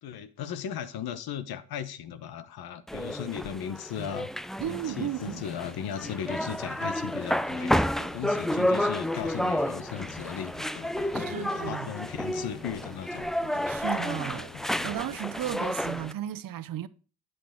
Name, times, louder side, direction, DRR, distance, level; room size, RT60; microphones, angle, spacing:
voice 1, 0.0-4.3 4.7-7.8 8.1-10.5 11.0-13.2, left 8 dB, 65° left, 1.1 m, -37 dB
sound 1, 2.9-16.1, equal, ahead, 0.3 m, -31 dB
voice 2, 4.6-5.4 11.1-11.9 13.7-14.5 14.8-16.9, right 12 dB, 55° right, 0.7 m, -34 dB
sound 2, 4.8-15.2, left 7 dB, 85° left, 1.4 m, -46 dB
9.1 x 7.8 x 3.7 m
supercardioid pair, 65°, 41 cm